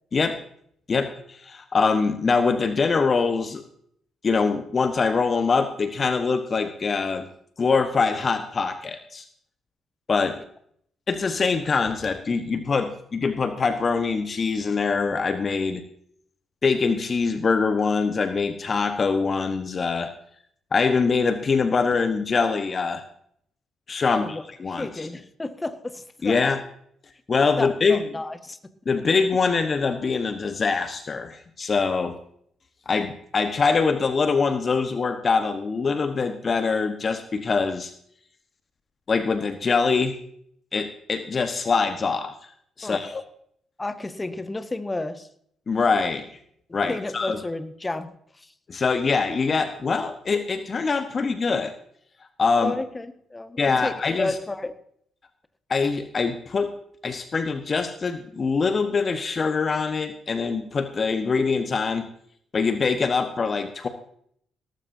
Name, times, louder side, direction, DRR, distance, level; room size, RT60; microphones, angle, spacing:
voice 1, 0.9-3.6 4.2-7.3 7.6-9.2 10.1-10.4 11.1-15.8 16.6-20.1 20.7-23.0 23.9-25.1 26.2-26.6 27.3-28.0 28.8-32.2 32.9-37.9 39.1-40.1 40.7-42.3 42.8-43.2 45.7-46.3 46.7-47.4 48.7-51.7 52.4-52.7 53.6-54.3 55.7-56.7 57.0-62.1 62.5-63.9, left 4 dB, 40° left, 9 dB, 1.3 m, -23 dB
voice 2, 24.1-26.4 27.6-28.6 42.8-43.1 43.8-45.3 46.7-48.5 52.6-54.7, left 2 dB, 20° left, 10 dB, 1.6 m, -32 dB
18.0 x 14.5 x 2.8 m, 0.65 s
hypercardioid pair, 45°, 0 cm